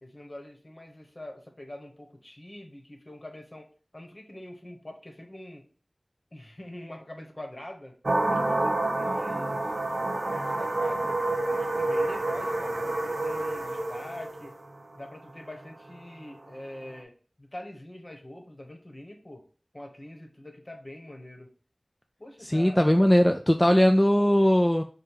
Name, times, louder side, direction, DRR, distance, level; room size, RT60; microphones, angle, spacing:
voice 1, 0.0-3.7 3.9-5.6 6.3-8.0 8.3-9.7 10.3-11.2 11.5-14.5 14.9-19.4 19.7-21.5 22.2-22.8, left 1 dB, 40° left, 3 dB, 1.1 m, -44 dB
sound 1, 8.0-16.9, right 2 dB, 60° right, 0.6 m, -29 dB
voice 2, 22.5-24.8, equal, 15° left, 5 dB, 0.3 m, -20 dB
5.1 x 2.3 x 4.6 m, 0.39 s
wide cardioid pair, 55°, 0 cm